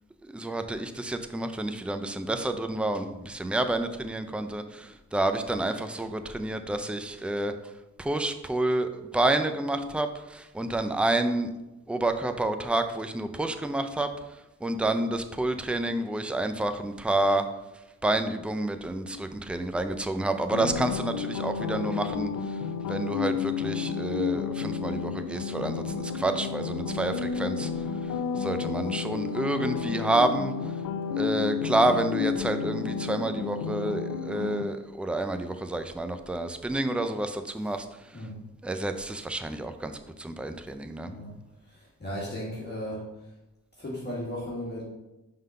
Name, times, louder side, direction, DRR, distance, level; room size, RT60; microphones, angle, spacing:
voice 1, 0.2-7.7 8.0-11.5 11.9-14.1 14.6-17.5 18.0-27.9 28.4-30.5 31.2-38.3 38.6-41.1, right 2 dB, 5° right, 8 dB, 0.5 m, -29 dB
sound 1, 20.5-34.6, left 6 dB, 85° left, 0.5 m, -31 dB
voice 2, 41.7-43.0 43.8-44.8, equal, 35° left, -6 dB, 1.9 m, -36 dB
5.5 x 3.8 x 5.5 m, 0.99 s
cardioid pair, 70°, 31 cm